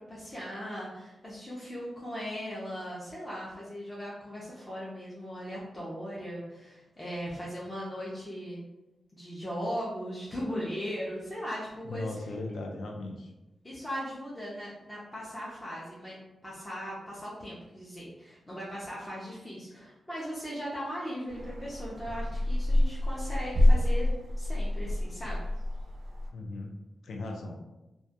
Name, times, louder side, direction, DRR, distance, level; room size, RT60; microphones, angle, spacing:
voice 1, 0.1-8.6 9.1-12.1 13.6-16.2 16.4-24.1 24.4-25.4, equal, 15° left, -7 dB, 0.4 m, -38 dB
voice 2, 11.9-13.3 26.3-26.7 27.0-27.6, left 2 dB, 75° left, 1 dB, 0.4 m, -37 dB
sound 1, 21.3-26.3, left 1 dB, 65° right, 0.3 m, -27 dB
2.2 x 2.1 x 2.7 m, 1.0 s
wide cardioid pair, 165°, 0 cm